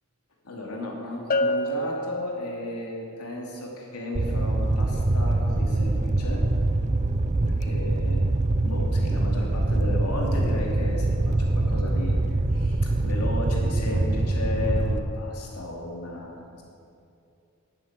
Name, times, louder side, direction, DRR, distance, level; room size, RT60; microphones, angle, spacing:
voice 1, 0.4-6.5 7.4-8.3 8.6-12.1 12.5-16.6, left 2 dB, 85° left, -1 dB, 3.0 m, -34 dB
Bell, 1.3-2.9, left 1 dB, 40° left, 0.7 m, -27 dB
Fire, 4.1-15.0, right 2 dB, 30° right, 0.6 m, -24 dB
11.5 x 9.7 x 8.2 m, 2.6 s
head